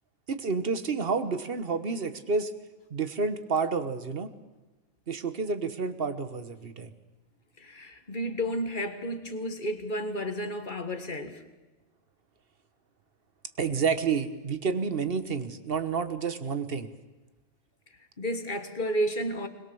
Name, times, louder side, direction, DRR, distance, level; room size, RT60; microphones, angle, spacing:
voice 1, 0.3-2.5 2.9-4.3 5.1-6.9 13.6-16.9, right 5 dB, 50° right, 1.4 m, -29 dB
voice 2, 7.6-11.4 18.2-19.5, equal, 40° left, 1.7 m, -32 dB
21.5 x 21.0 x 7.1 m
omnidirectional pair, 1.3 m